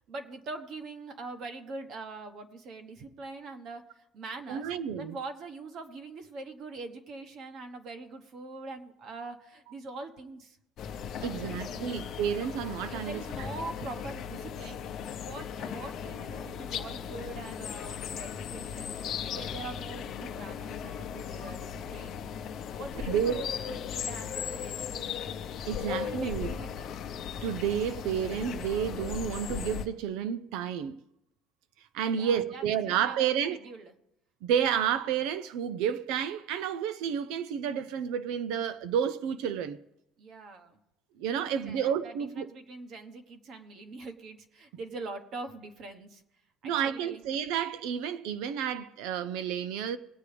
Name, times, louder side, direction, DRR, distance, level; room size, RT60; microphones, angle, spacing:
voice 1, 0.1-10.6 11.1-12.0 12.9-14.8 15.1-22.2 22.7-25.3 25.8-26.9 32.2-33.9 40.2-40.8 41.4-46.2 46.6-47.2, right 3 dB, 45° right, 1.2 m, -43 dB
voice 2, 4.5-5.2 11.2-13.7 23.1-23.4 25.7-26.6 27.4-31.0 31.9-33.7 34.4-39.8 41.2-42.5 46.6-50.0, right 8 dB, 75° right, 0.5 m, -30 dB
sound 1, 10.8-29.9, left 8 dB, 45° left, 0.8 m, -37 dB
20.0 x 8.3 x 3.4 m
cardioid pair, 155°, 0 cm